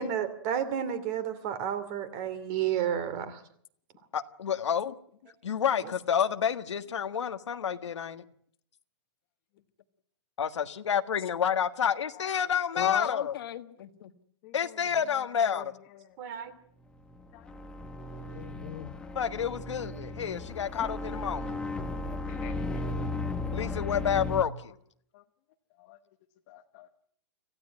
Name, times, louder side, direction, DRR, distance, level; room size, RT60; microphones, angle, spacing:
voice 1, 0.0-3.4 16.2-16.5, right 9 dB, 30° right, 2.6 m, -31 dB
voice 2, 1.5-2.5 11.2-11.4 12.1-12.3 14.4-16.2 17.3-17.5 18.7-19.1 22.3-22.8 25.1-25.2 25.8-26.0 26.5-26.9, left 14 dB, 30° left, 1.2 m, -50 dB
voice 3, 4.1-4.9 5.4-8.2 10.4-13.3 14.5-15.6 19.1-21.6 23.5-24.5, left 8 dB, 90° left, 1.6 m, -29 dB
voice 4, 12.7-14.1 18.2-18.9 20.6-20.7 24.0-24.1, left 11 dB, 55° left, 1.7 m, -37 dB
sound 1, 17.0-24.4, left 2 dB, 5° left, 1.2 m, -35 dB
26.0 x 15.5 x 9.5 m
hypercardioid pair, 160°, 15 cm